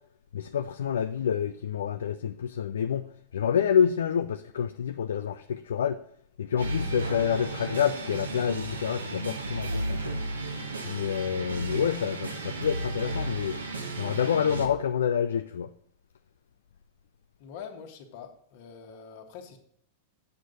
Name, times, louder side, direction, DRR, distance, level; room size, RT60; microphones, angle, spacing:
voice 1, 0.3-3.1 3.3-6.0 6.4-10.2 10.8-13.6 14.0-15.7, left 8 dB, 70° left, 0.4 m, -28 dB
sound 1, 6.6-14.7, right 2 dB, 80° right, 1.3 m, -34 dB
voice 2, 17.4-19.6, left 7 dB, 55° left, 1.5 m, -44 dB
7.7 x 6.6 x 3.9 m
figure-of-eight pair, 95°, 0 cm